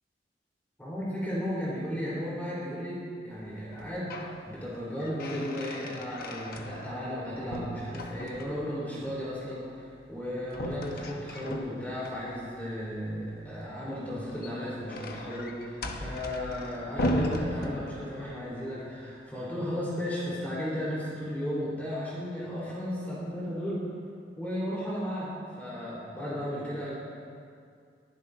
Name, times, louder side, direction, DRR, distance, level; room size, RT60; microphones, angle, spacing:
voice 1, 0.8-23.8 24.4-26.9, equal, 10° left, -8 dB, 4.5 m, -35 dB
sound 1, 3.7-4.4 4.7-7.2 7.5-8.7 10.5-12.1 14.1-18.3, left 1 dB, 55° left, 1.1 m, -36 dB
22.5 x 15.0 x 2.9 m, 2.3 s
head